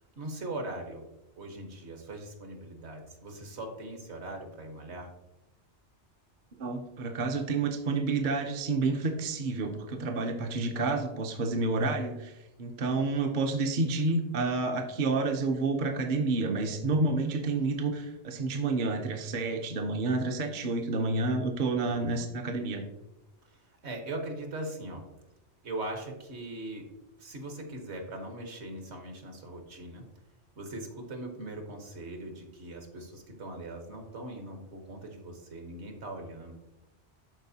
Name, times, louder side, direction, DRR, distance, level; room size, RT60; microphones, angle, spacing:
voice 1, 0.2-1.0 1.4-5.1 21.8-22.2 23.4-25.1 25.6-26.9 27.2-30.0 30.6-36.5, right 1 dB, 65° right, 4 dB, 1.4 m, -40 dB
voice 2, 6.6-22.8, right 3 dB, 50° right, 4 dB, 0.7 m, -29 dB
12.0 x 4.4 x 2.7 m, 0.96 s
omnidirectional pair, 1.2 m